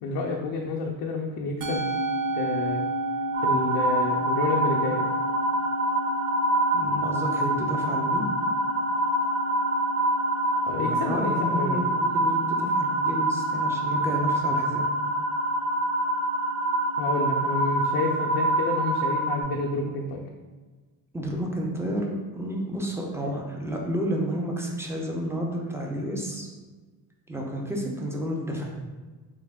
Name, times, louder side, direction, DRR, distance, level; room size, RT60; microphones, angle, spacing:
voice 1, 0.0-1.9 2.3-2.8 3.4-5.0 10.7-11.8 17.0-20.2, left 3 dB, 75° left, -1 dB, 0.5 m, -29 dB
Musical instrument, 1.6-20.1, right 1 dB, 60° right, 0.6 m, -34 dB
sound 1, 3.3-19.4, right 1 dB, 40° right, 0.9 m, -26 dB
voice 2, 6.7-8.3 10.7-14.9 21.1-26.5 27.3-28.7, equal, 5° right, -1 dB, 0.7 m, -31 dB
3.5 x 2.5 x 3.5 m, 1.3 s
cardioid pair, 85°, 39 cm